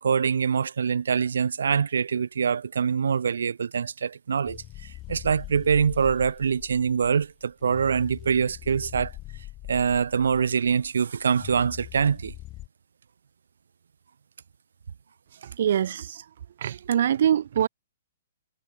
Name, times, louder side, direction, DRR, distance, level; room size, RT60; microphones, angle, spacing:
voice 1, 0.0-9.1 9.7-12.3, right 6 dB, 90° right, 2.2 m, -24 dB
sound 1, 4.5-12.7, left 17 dB, 25° left, 5.6 m, -42 dB
voice 2, 15.3-16.3 16.6-17.7, right 9 dB, 60° right, 1.1 m, -24 dB
hypercardioid pair, 160°, 0 cm